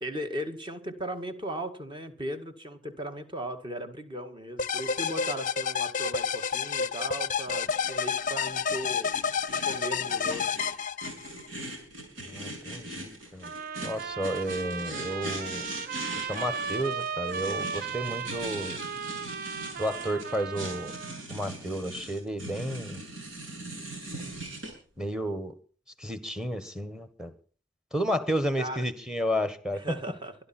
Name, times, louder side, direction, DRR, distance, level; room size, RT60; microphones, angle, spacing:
voice 1, 0.0-9.1 9.5-10.6 28.6-28.9 29.7-30.4, right 1 dB, 25° right, 1.9 m, -37 dB
sound 1, 4.6-11.5, left 6 dB, 40° left, 0.6 m, -30 dB
sound 2, 7.5-24.7, right 1 dB, 85° right, 7.1 m, -40 dB
voice 2, 12.2-13.5 13.8-15.6 16.2-18.8 19.8-20.9 21.3-23.0 25.0-25.5 26.0-27.3 27.9-29.8, equal, 5° right, 1.6 m, -32 dB
sound 3, 13.4-21.2, right 6 dB, 50° right, 0.7 m, -36 dB
24.0 x 11.5 x 4.4 m
head